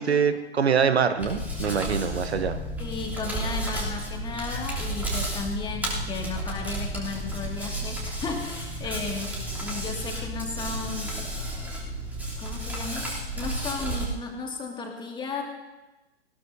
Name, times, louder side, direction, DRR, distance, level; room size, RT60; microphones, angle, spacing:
voice 1, 0.0-2.6, right 6 dB, 75° right, 10 dB, 1.1 m, -24 dB
Hands, 1.2-14.0, right 1 dB, 5° right, 3.2 m, -32 dB
voice 2, 2.8-9.4 9.6-11.2 12.4-15.4, left 4 dB, 15° left, 1 dB, 2.1 m, -34 dB
19.5 x 16.5 x 2.7 m, 1.1 s
hypercardioid pair, 125°, 32 cm